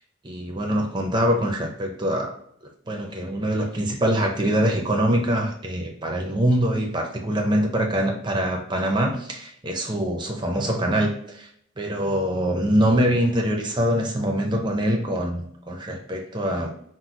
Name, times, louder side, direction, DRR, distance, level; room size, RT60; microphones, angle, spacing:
voice 1, 0.2-2.3 2.9-11.5 11.8-16.7, equal, 25° right, 2 dB, 0.7 m, -24 dB
6.1 x 2.2 x 3.8 m, 0.69 s
head